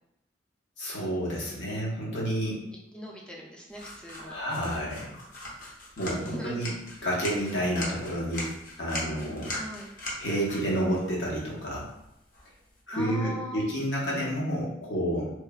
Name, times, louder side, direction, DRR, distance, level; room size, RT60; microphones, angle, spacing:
voice 1, 0.8-2.6 4.2-5.1 6.0-6.7 7.0-8.5 8.8-9.5 10.2-11.8 12.9-15.3, equal, 80° left, -5 dB, 0.8 m, -30 dB
voice 2, 2.9-4.3 6.0-6.6 9.6-9.9 12.9-13.7, left 1 dB, 5° left, -2 dB, 0.3 m, -40 dB
sound 1, 3.7-12.8, left 1 dB, 45° left, 0.6 m, -41 dB
3.0 x 2.0 x 2.3 m, 0.85 s
head